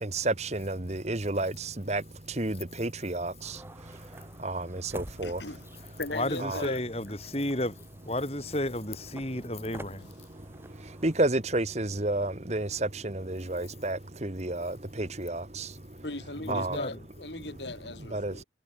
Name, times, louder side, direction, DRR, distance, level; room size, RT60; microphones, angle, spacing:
voice 1, 0.0-2.0 2.4-3.6 4.4-5.4 6.4-6.6 11.0-15.7 16.5-16.8 18.1-18.3, right 2 dB, 35° right, 1.5 m, -30 dB
sound 1, 3.4-11.1, right 1 dB, 15° right, 4.4 m, -50 dB
voice 2, 5.2-6.8 16.0-18.4, left 2 dB, 70° left, 4.6 m, -38 dB
voice 3, 6.1-7.8 8.1-10.1 16.4-17.0, left 1 dB, 35° left, 5.8 m, -32 dB
head